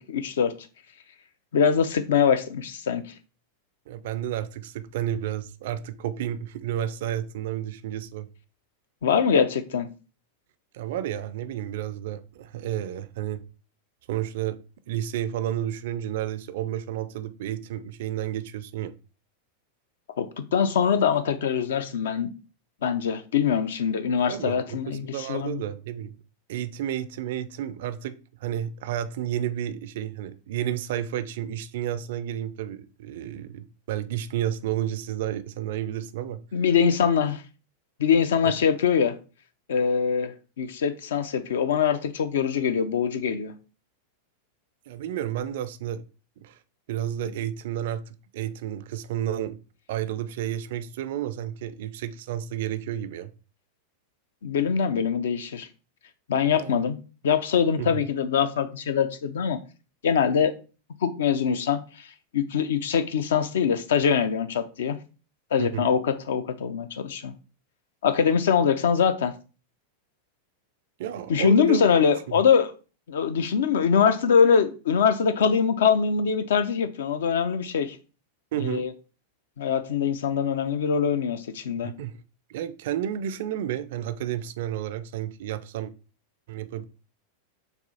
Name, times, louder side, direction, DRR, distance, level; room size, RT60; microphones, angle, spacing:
voice 1, 0.1-0.5 1.5-3.0 9.0-9.9 20.2-22.3 22.8-25.6 36.5-37.4 38.0-39.2 39.7-43.5 54.4-55.7 56.3-57.0 57.2-59.6 60.0-60.5 61.0-62.1 62.3-65.0 65.5-67.3 68.0-69.3 71.3-72.7 73.1-78.0 78.6-78.9 79.6-81.9, left 7 dB, 60° left, 0.4 m, -23 dB
voice 2, 3.9-8.3 10.7-13.4 14.1-14.6 14.9-18.9 24.3-26.2 26.5-28.1 28.4-36.4 38.4-38.5 44.9-46.0 46.4-46.6 46.9-49.6 49.9-53.3 56.6-56.8 57.8-58.0 65.6-65.9 71.0-71.8 78.5-78.9 81.8-82.1 82.5-85.9 86.5-86.8, right 11 dB, 55° right, 0.3 m, -31 dB
6.7 x 2.4 x 2.7 m
figure-of-eight pair, 90°, 0 cm